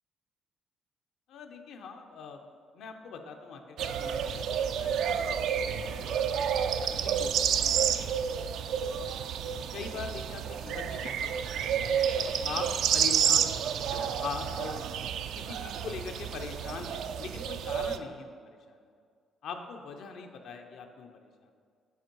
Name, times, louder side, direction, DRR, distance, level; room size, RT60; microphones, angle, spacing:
voice 1, 1.3-2.4 2.7-5.4 5.8-6.1 6.8-7.3 7.8-8.3 9.7-14.9 15.3-18.8 19.4-21.5, left 5 dB, 75° left, 4 dB, 0.7 m, -42 dB
sound 1, 3.8-18.0, right 8 dB, 80° right, 0.3 m, -30 dB
8.0 x 4.6 x 4.5 m, 2.1 s
cardioid pair, 90°, 0 cm